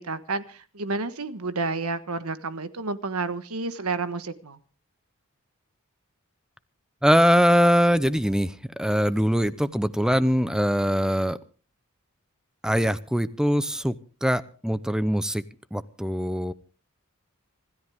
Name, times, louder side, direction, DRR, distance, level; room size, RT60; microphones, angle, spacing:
voice 1, 0.0-4.6, right 3 dB, 80° right, 1.4 m, -30 dB
voice 2, 7.0-11.4 12.6-13.9 14.2-15.4 15.7-16.5, equal, 5° right, 0.7 m, -22 dB
26.0 x 13.5 x 3.6 m
head